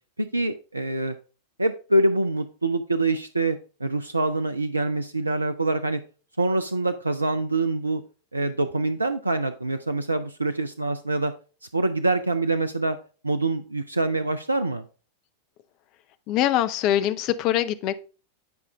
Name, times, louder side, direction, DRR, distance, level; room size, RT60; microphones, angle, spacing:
voice 1, 0.2-1.2 1.6-6.0 6.4-8.0 8.3-11.3 11.7-13.0 13.2-14.8, right 2 dB, 80° right, 0.4 m, -25 dB
voice 2, 16.3-17.9, left 12 dB, 40° left, 0.6 m, -23 dB
9.5 x 4.8 x 3.4 m
figure-of-eight pair, 90°, 0 cm